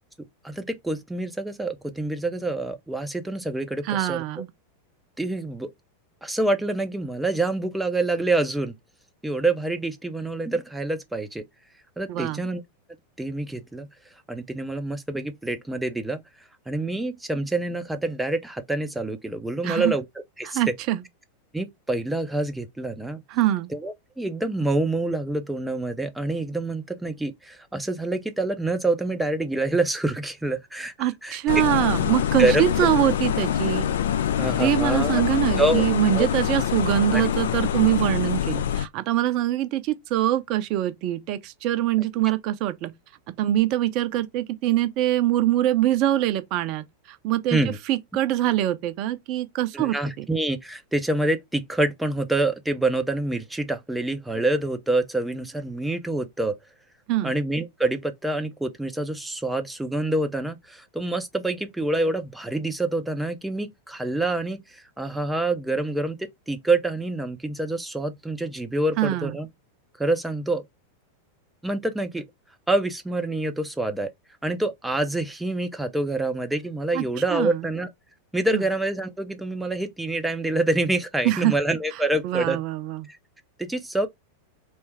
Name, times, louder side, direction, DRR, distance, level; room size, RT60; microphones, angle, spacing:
voice 1, 0.4-4.4 5.2-5.7 6.2-8.7 9.2-11.4 12.0-12.6 13.2-13.9 14.3-16.2 16.7-20.0 20.4-20.7 21.5-23.2 23.7-31.6 32.4-32.6 34.4-35.2 35.6-35.8 36.2-36.3 37.1-37.2 47.5-47.8 49.7-56.6 57.2-69.5 70.0-70.6 71.6-72.2 72.7-74.1 74.4-77.9 78.3-82.6 83.1-83.2 83.6-84.1, right 2 dB, 5° right, 0.6 m, -26 dB
voice 2, 3.8-4.5 12.1-12.4 19.6-19.9 20.4-21.0 23.3-23.7 31.0-33.9 34.6-42.9 43.4-46.8 47.2-47.6 47.9-50.2 57.1-57.3 69.0-69.3 76.9-77.0 77.3-77.6 78.5-78.6 81.2-81.5 82.2-83.1, right 13 dB, 40° right, 0.6 m, -24 dB
sound 1, 31.5-38.9, left 9 dB, 60° left, 0.4 m, -25 dB
3.3 x 3.1 x 4.6 m
figure-of-eight pair, 90°, 0 cm